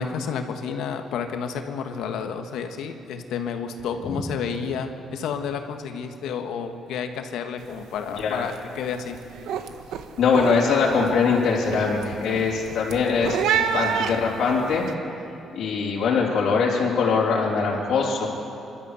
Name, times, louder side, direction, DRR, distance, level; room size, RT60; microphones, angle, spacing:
voice 1, 0.0-9.2, left 6 dB, 80° left, 6 dB, 1.5 m, -30 dB
sound 1, 7.6-7.9 8.1-8.6 9.0-14.9, right 8 dB, 90° right, 1.1 m, -29 dB
voice 2, 10.2-13.4 13.7-14.8 15.5-18.3, left 5 dB, 60° left, -4 dB, 3.4 m, -22 dB
26.0 x 12.5 x 8.3 m, 2.8 s
cardioid pair, 150°, 0 cm